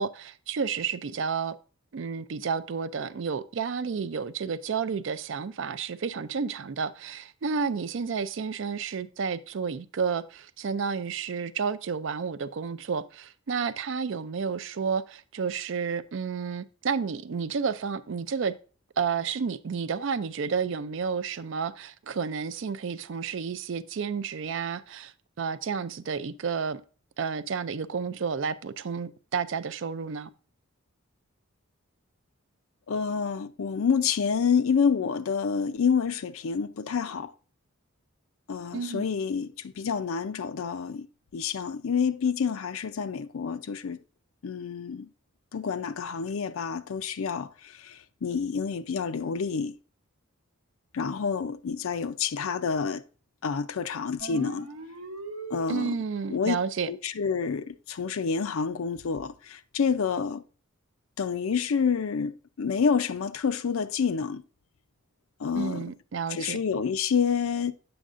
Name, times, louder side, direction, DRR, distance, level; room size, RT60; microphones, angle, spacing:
voice 1, 0.0-1.6 1.9-18.5 19.0-26.8 27.2-30.3 38.7-39.1 55.7-56.9 65.5-66.6, right 6 dB, 60° right, 0.4 m, -31 dB
voice 2, 32.9-37.3 38.5-41.1 41.3-44.0 44.4-45.1 45.5-49.8 50.9-53.0 53.4-54.7 55.5-56.0 56.3-56.6 56.9-60.4 61.2-64.4 65.4-65.9 66.3-67.7, left 6 dB, 70° left, 0.5 m, -28 dB
sound 1, 54.2-56.2, right 3 dB, 75° right, 0.9 m, -40 dB
7.8 x 6.2 x 2.5 m
head